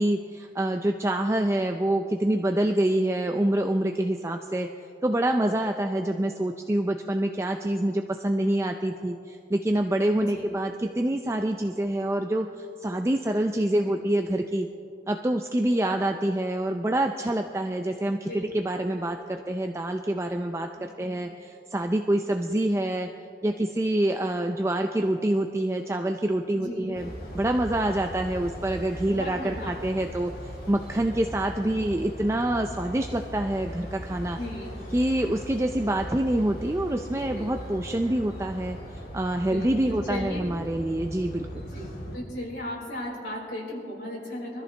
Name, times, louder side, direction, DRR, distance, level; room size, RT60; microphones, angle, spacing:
voice 1, 0.0-4.7 5.0-14.7 15.1-23.1 23.4-30.3 30.7-34.4 34.9-38.8 39.1-41.6, right 1 dB, 15° right, 5 dB, 0.4 m, -26 dB
voice 2, 10.2-10.5 13.9-14.1 18.3-18.5 20.8-21.2 26.5-27.0 29.1-29.8 31.7-31.8 34.3-34.8 37.3-37.5 39.5-40.5 41.5-44.6, left 1 dB, 80° left, -4 dB, 4.3 m, -37 dB
sound 1, 26.9-42.2, equal, 55° left, 3.2 m, -39 dB
24.0 x 14.0 x 3.3 m, 2.7 s
head